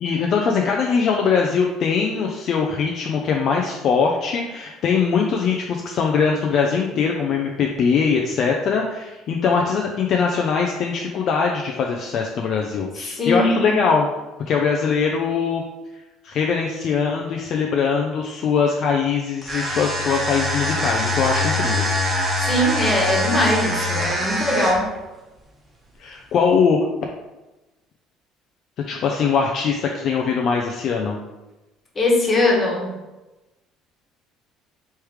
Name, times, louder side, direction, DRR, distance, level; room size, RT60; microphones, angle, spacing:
voice 1, 0.0-14.1 14.5-15.6 16.2-21.9 26.0-26.8 28.9-31.2, left 5 dB, 55° left, 1 dB, 0.5 m, -21 dB
voice 2, 13.1-13.8 22.4-24.9 31.9-33.0, left 1 dB, 30° left, -1 dB, 1.3 m, -21 dB
sound 1, 19.4-25.0, left 1 dB, 20° right, 1.1 m, -23 dB
3.3 x 3.2 x 4.7 m, 1.1 s
supercardioid pair, 100°, 0 cm